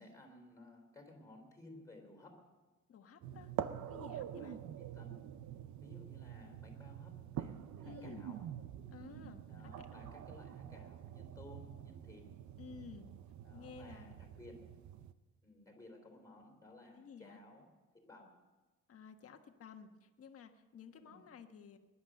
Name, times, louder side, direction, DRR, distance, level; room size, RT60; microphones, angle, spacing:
voice 1, 0.0-2.5 4.4-5.2 5.8-8.4 9.5-12.4 13.4-14.6 15.4-18.4 21.0-21.3, left 2 dB, 10° left, 2 dB, 3.8 m, -57 dB
voice 2, 2.9-3.5 3.9-4.6 7.8-8.3 8.9-9.4 9.8-10.2 12.6-13.1 13.5-14.1 16.9-17.4 18.9-21.8, left 6 dB, 50° left, 6 dB, 1.4 m, -53 dB
sound 1, 3.2-15.1, right 10 dB, 65° right, 0.7 m, -46 dB
20.0 x 11.0 x 6.4 m, 1.2 s
cardioid pair, 135°, 31 cm